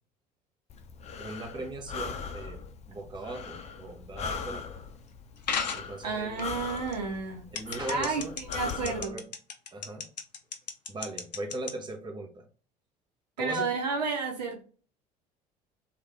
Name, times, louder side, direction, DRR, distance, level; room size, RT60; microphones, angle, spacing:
Breathing, 0.7-9.0, left 5 dB, 30° left, 0.5 m, -40 dB
voice 1, 1.2-2.6 2.9-4.8 5.7-6.5 7.5-8.3 8.6-9.2 9.7-10.1 10.9-12.5 13.4-13.7, right 2 dB, 20° right, 3 dB, 0.8 m, -39 dB
sound 1, 5.5-5.9 6.4-7.0 7.6-11.7, left 6 dB, 85° left, 0.4 m, -33 dB
voice 2, 6.0-7.5 7.9-9.1 13.4-14.6, right 4 dB, 80° right, 2 dB, 0.8 m, -31 dB
3.2 x 2.4 x 3.1 m, 0.39 s
figure-of-eight pair, 60°, 21 cm